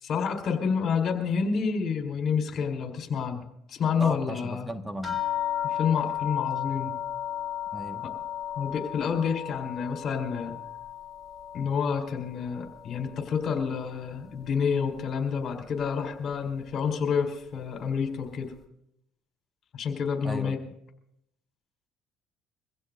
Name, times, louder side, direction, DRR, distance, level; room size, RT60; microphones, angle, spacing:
voice 1, 0.0-4.7 5.7-7.0 8.0-8.1 8.6-10.6 11.5-18.5 19.7-20.6, left 6 dB, 50° left, 3 dB, 4.3 m, -29 dB
voice 2, 4.0-5.2 7.7-8.1 20.2-20.5, equal, 10° right, 6 dB, 1.7 m, -35 dB
sound 1, 5.0-13.9 14.2-15.0 15.8-15.9 16.3-16.5, left 11 dB, 5° left, 4.5 m, -35 dB
24.5 x 16.0 x 2.7 m, 0.79 s
supercardioid pair, 90°, 0 cm